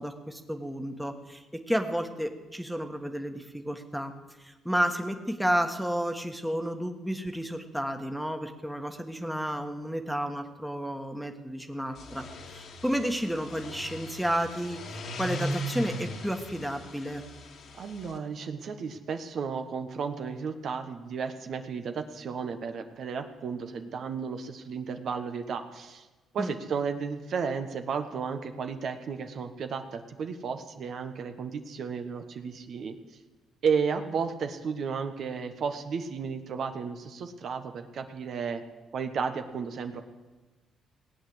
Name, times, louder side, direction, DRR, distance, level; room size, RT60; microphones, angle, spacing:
voice 1, 0.0-4.1 4.4-12.2 12.5-17.2 26.4-26.5, equal, ahead, 5 dB, 1.5 m, -31 dB
sound 1, 11.9-18.2, equal, 70° left, 2.0 m, -38 dB
voice 2, 17.8-26.1 26.3-33.0 33.6-38.6 38.9-40.0, right 6 dB, 65° right, 7 dB, 1.2 m, -33 dB
18.0 x 8.7 x 7.9 m, 1.2 s
cardioid pair, 90°, 0 cm